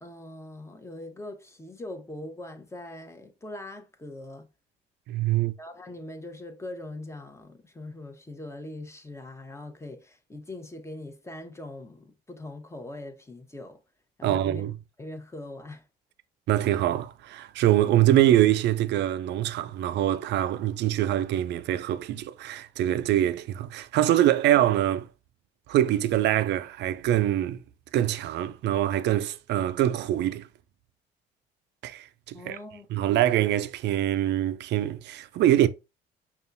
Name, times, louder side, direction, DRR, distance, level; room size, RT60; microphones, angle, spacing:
voice 1, 0.0-4.5 5.6-13.8 14.2-14.6 15.0-15.8 32.3-33.1, left 1 dB, 15° left, 0.9 m, -41 dB
voice 2, 5.1-5.5 14.2-14.7 16.5-25.1 25.7-27.6 27.9-30.5 31.8-32.6 32.9-35.7, right 13 dB, 65° right, 0.4 m, -24 dB
5.4 x 2.3 x 2.6 m
supercardioid pair, 65°, 19 cm